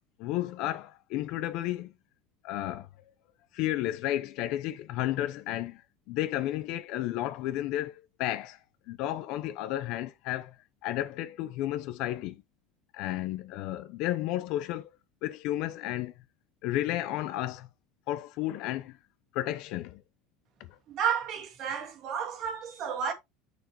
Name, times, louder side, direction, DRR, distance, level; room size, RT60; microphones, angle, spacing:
voice 1, 0.2-1.9 2.4-2.9 3.5-5.8 6.1-7.9 8.2-8.6 8.9-10.5 10.8-12.4 12.9-14.9 15.2-16.1 16.6-17.7 18.1-18.9 19.3-20.0, left 14 dB, 60° left, 0.8 m, -32 dB
voice 2, 20.9-23.1, right 7 dB, 45° right, 2.0 m, -31 dB
7.0 x 6.3 x 3.1 m
cardioid pair, 150°, 0 cm